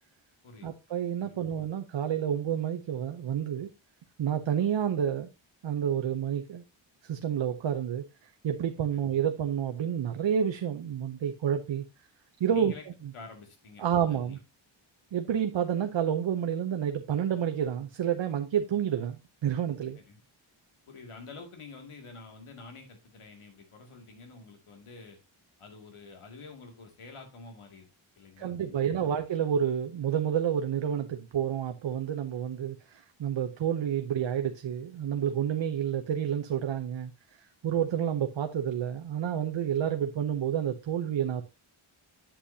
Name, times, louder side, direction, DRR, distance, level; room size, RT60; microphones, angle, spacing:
voice 1, 0.6-3.7 4.2-5.3 5.6-6.6 7.0-8.1 8.4-11.8 12.4-12.7 13.8-14.4 15.1-20.0 28.4-37.1 37.6-41.4, right 9 dB, 65° right, 0.8 m, -29 dB
voice 2, 12.5-12.8 13.1-14.4 20.1-20.2 20.9-25.2 25.6-27.9 28.2-28.8, left 4 dB, 85° left, 2.4 m, -48 dB
8.5 x 7.9 x 2.7 m
wide cardioid pair, 160°, 49 cm